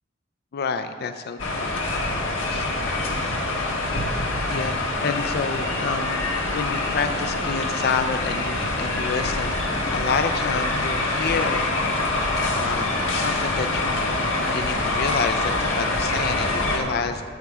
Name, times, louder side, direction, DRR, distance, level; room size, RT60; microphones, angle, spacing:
voice 1, 0.5-1.8 2.4-3.2 4.5-4.7 5.0-6.2 6.5-9.5 9.9-11.7 12.5-17.2, left 5 dB, 55° left, 9 dB, 0.4 m, -29 dB
sound 1, 1.4-16.8, left 2 dB, 80° left, 1.3 m, -25 dB
8.7 x 5.8 x 6.0 m, 2.2 s
head